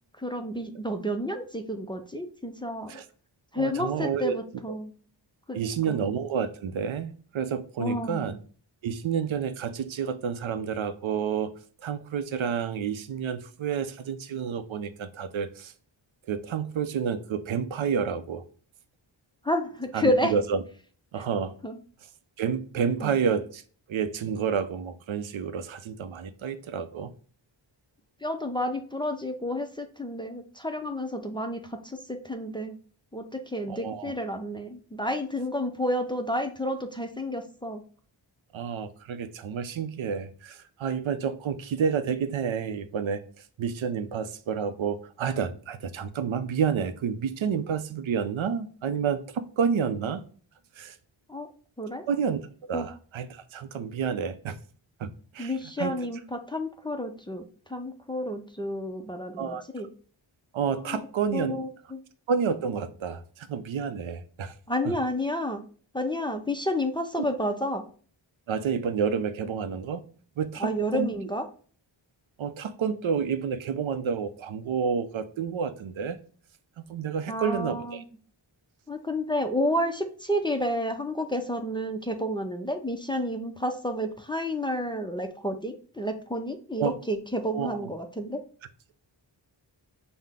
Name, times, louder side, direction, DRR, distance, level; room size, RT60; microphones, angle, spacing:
voice 1, 0.1-3.0 3.5-4.9 5.5-6.0 7.8-8.4 19.4-20.3 21.6-21.8 23.0-23.2 28.2-32.8 33.1-37.8 51.3-51.5 51.8-52.4 52.7-52.9 55.4-59.9 60.9-61.0 61.3-62.0 64.7-65.6 65.9-67.8 70.6-71.4 77.3-78.0 78.9-88.4, equal, 10° left, 0.4 m, -30 dB
voice 2, 3.6-4.4 5.5-8.4 8.8-11.5 11.8-15.7 16.3-18.4 19.9-20.6 21.1-21.5 22.4-23.6 23.9-27.1 33.7-34.1 38.5-43.2 43.6-50.2 50.8-51.0 52.1-54.6 55.0-56.0 59.4-59.6 60.5-61.6 62.3-64.5 67.2-67.3 68.5-70.0 70.4-71.1 72.4-76.2 76.8-78.0 86.8-86.9 87.5-87.8, right 7 dB, 80° right, 0.5 m, -29 dB
5.6 x 2.1 x 3.4 m
wide cardioid pair, 80°, 47 cm